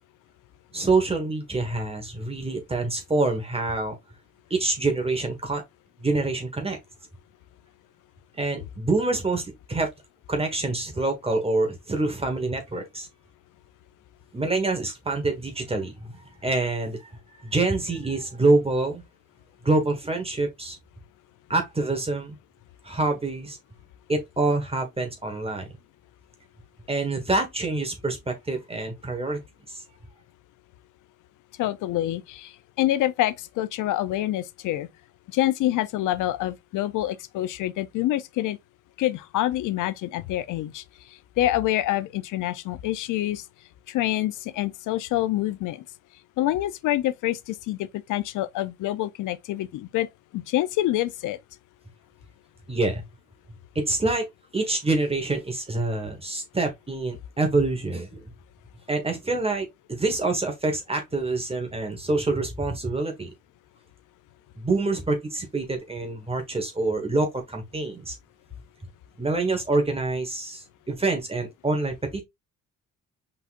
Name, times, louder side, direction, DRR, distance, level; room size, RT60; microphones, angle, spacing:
voice 1, 0.7-4.0 4.5-5.6 6.0-6.8 8.4-9.9 10.3-13.1 14.3-17.1 17.4-19.0 19.6-20.8 21.5-22.4 22.8-23.6 24.1-25.7 26.9-29.4 29.7-29.8 52.7-53.0 53.7-58.3 58.9-63.3 64.6-68.2 69.2-72.2, right 2 dB, 20° right, 1.5 m, -26 dB
voice 2, 31.6-34.9 35.3-38.6 39.0-40.8 41.4-43.4 43.9-45.8 46.4-50.1 50.3-51.4, left 14 dB, 85° left, 0.6 m, -26 dB
5.5 x 3.9 x 2.5 m
cardioid pair, 90°, 30 cm